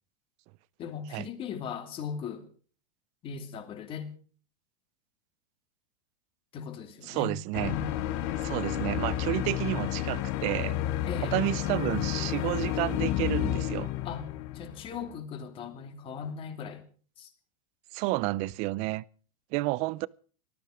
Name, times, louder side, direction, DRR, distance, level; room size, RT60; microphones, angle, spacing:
voice 1, 0.8-2.5 3.2-4.1 6.5-7.4 7.6-8.0 11.1-11.4 14.0-14.3 14.5-16.8 17.2-17.3, left 7 dB, 30° left, 2.7 m, -38 dB
voice 2, 7.1-7.7 8.4-10.8 11.3-13.9 17.9-19.0 19.5-20.1, right 19 dB, 40° right, 0.6 m, -30 dB
sound 1, 7.5-15.1, left 12 dB, 50° left, 1.7 m, -31 dB
18.0 x 13.5 x 5.1 m
supercardioid pair, 135°, 17 cm